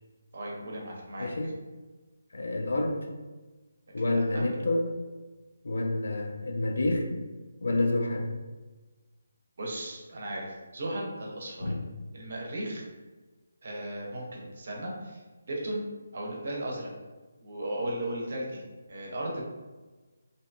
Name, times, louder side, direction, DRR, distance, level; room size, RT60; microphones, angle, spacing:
voice 1, 0.3-1.3 4.1-4.4 9.6-11.7 12.1-12.9 13.6-15.8 16.1-16.9 17.4-18.6 18.9-19.4, right 1 dB, 50° right, -2 dB, 0.7 m, -36 dB
voice 2, 1.2-1.5 2.3-3.1 3.9-5.0 5.6-7.2 7.6-8.3 11.6-11.8, left 2 dB, 65° left, 3 dB, 0.4 m, -28 dB
2.6 x 2.3 x 2.2 m, 1.2 s
figure-of-eight pair, 150°, 0 cm